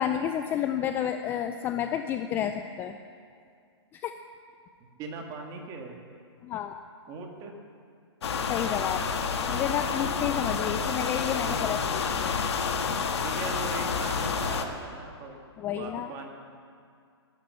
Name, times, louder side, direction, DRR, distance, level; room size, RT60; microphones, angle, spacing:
voice 1, 0.0-2.9 3.9-4.1 6.4-6.8 8.5-9.1 9.5-12.4 15.6-16.1, left 9 dB, 15° left, 8 dB, 0.4 m, -30 dB
voice 2, 4.8-6.0 7.1-7.6 10.6-11.0 13.2-16.3, right 4 dB, 25° right, 2 dB, 2.0 m, -40 dB
sound 1, 8.2-14.7, left 5 dB, 70° left, 1.6 m, -29 dB
12.0 x 12.0 x 7.8 m, 2.3 s
hypercardioid pair, 150°, 14 cm